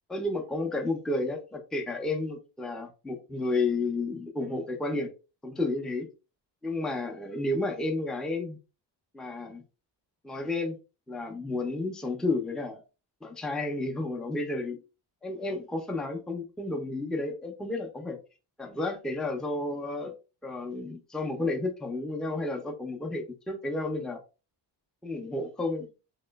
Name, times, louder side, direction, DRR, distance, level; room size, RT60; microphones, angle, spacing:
voice 1, 0.1-5.1 5.4-6.1 6.6-8.6 9.1-9.6 10.2-10.8 11.1-12.8 13.2-14.8 15.2-18.2 18.6-20.1 20.4-24.2 25.0-25.9, left 2 dB, ahead, 0.4 m, -31 dB
2.9 x 2.9 x 2.2 m
cardioid pair, 120°, 43 cm